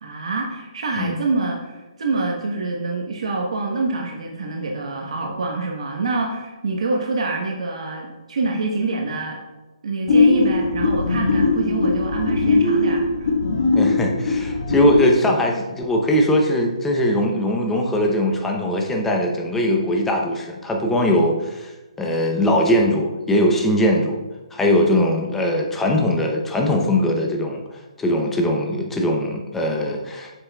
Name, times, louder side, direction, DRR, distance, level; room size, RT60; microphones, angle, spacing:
voice 1, 0.0-9.4 9.8-13.3, right 3 dB, 65° right, 0 dB, 1.0 m, -26 dB
sound 1, 10.1-15.1, left 3 dB, 65° left, 1.2 m, -19 dB
voice 2, 13.7-21.7 22.0-24.2 24.5-30.3, left 1 dB, 5° left, 1 dB, 0.6 m, -20 dB
7.7 x 6.0 x 2.3 m, 1.1 s
hypercardioid pair, 160°, 4 cm